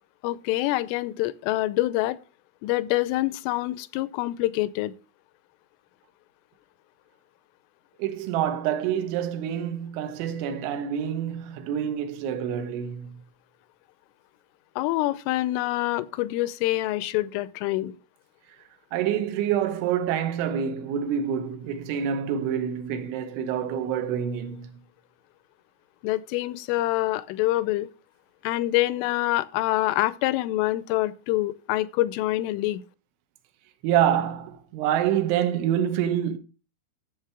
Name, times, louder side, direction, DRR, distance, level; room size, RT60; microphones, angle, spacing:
voice 1, 0.2-2.2 2.6-4.9 14.8-17.9 26.0-27.9 28.4-32.8, left 17 dB, 85° left, 3.1 m, -26 dB
voice 2, 8.0-13.2 18.9-24.8 33.8-36.4, right 9 dB, 80° right, 3.2 m, -27 dB
12.5 x 7.2 x 3.3 m
omnidirectional pair, 5.7 m